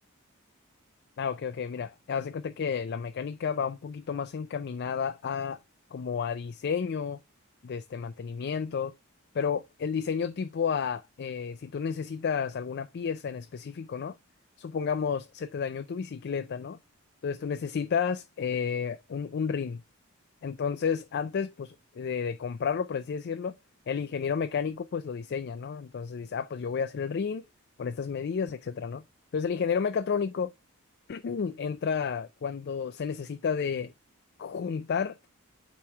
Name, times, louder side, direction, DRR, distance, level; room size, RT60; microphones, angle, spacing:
voice 1, 1.2-5.6 5.9-7.2 7.6-8.9 9.3-14.2 14.6-16.8 17.2-19.8 20.4-23.5 23.9-27.5 27.8-29.0 29.3-30.5 31.1-33.9 34.4-35.2, left 6 dB, 50° left, 0.4 m, -31 dB
8.5 x 3.0 x 4.6 m
head